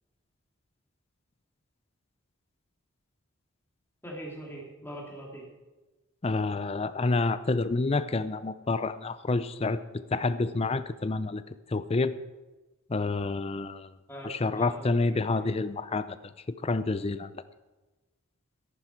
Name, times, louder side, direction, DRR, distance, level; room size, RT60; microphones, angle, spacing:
voice 1, 4.0-5.5 14.1-15.5, right 1 dB, 10° left, -3 dB, 3.0 m, -42 dB
voice 2, 6.2-11.4 11.7-12.2 12.9-13.9 14.2-16.2 16.6-17.4, left 3 dB, 30° left, 14 dB, 0.5 m, -28 dB
14.0 x 11.0 x 4.5 m, 1.2 s
head